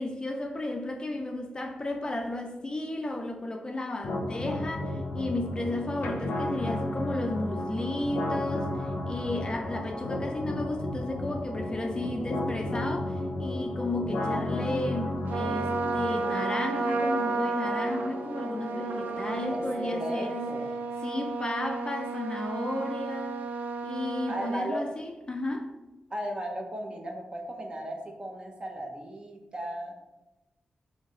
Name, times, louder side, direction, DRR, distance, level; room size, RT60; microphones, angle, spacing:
voice 1, 0.0-20.5 21.0-23.4 23.8-25.7, left 2 dB, 30° left, 3 dB, 0.4 m, -33 dB
sound 1, 4.0-20.0, left 1 dB, 80° left, 0.6 m, -34 dB
Trumpet, 15.3-24.6, right 4 dB, 70° right, 0.3 m, -32 dB
voice 2, 19.5-20.7 24.3-24.8 26.1-30.0, equal, 30° right, 1 dB, 0.8 m, -36 dB
3.0 x 2.7 x 3.8 m, 1.0 s
cardioid pair, 55°, 3 cm